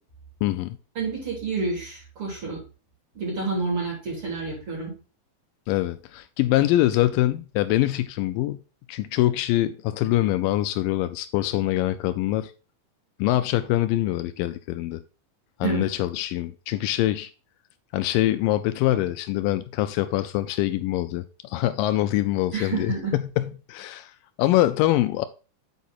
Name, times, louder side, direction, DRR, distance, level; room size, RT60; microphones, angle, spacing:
voice 1, 0.4-0.8 5.7-8.6 8.9-12.5 13.2-15.0 15.6-17.3 17.9-24.1 24.4-25.3, left 15 dB, 85° left, 2.2 m, -24 dB
voice 2, 1.0-2.6 3.1-4.9 15.6-15.9 22.5-23.1, right 4 dB, 40° right, 4.2 m, -29 dB
8.2 x 4.7 x 4.2 m
omnidirectional pair, 4.0 m